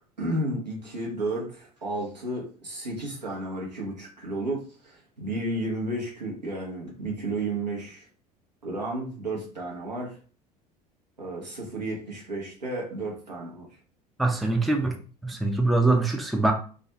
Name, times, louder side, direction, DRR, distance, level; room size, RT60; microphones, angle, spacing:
voice 1, 0.0-8.1 8.6-10.2 11.2-13.7, right 1 dB, 85° right, 0.8 m, -32 dB
voice 2, 14.2-16.5, right 2 dB, ahead, 0.3 m, -24 dB
2.4 x 2.2 x 2.9 m
figure-of-eight pair, 65°, 21 cm